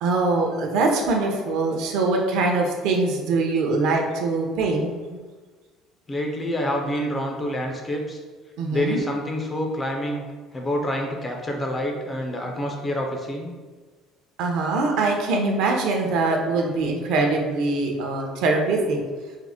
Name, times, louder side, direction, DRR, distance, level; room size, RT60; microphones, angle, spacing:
voice 1, 0.0-4.9 8.6-9.0 14.4-19.0, right 3 dB, 65° right, 2 dB, 0.6 m, -23 dB
voice 2, 6.1-8.2 8.7-10.2 10.5-13.6, left 1 dB, 15° left, 1 dB, 0.4 m, -27 dB
3.6 x 2.1 x 3.5 m, 1.4 s
cardioid pair, 160°, 0 cm